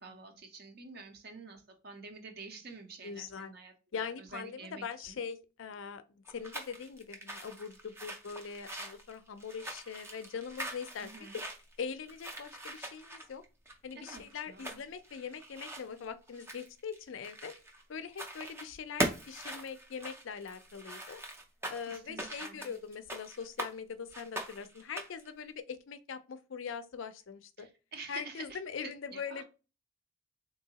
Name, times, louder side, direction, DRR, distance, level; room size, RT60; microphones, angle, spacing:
voice 1, 0.0-5.2 11.0-11.4 13.9-14.8 21.8-22.8 27.6-29.4, right 4 dB, 50° right, 0.7 m, -49 dB
voice 2, 3.0-3.5 3.9-11.1 11.3-11.4 11.8-13.4 13.8-17.6 17.9-21.2 21.7-27.7 28.1-29.4, left 6 dB, 65° left, 0.4 m, -42 dB
sound 1, 6.2-17.8 18.1-18.7 19.0-23.7 24.1-25.3, right 1 dB, 10° right, 0.4 m, -41 dB
3.7 x 2.7 x 2.8 m
head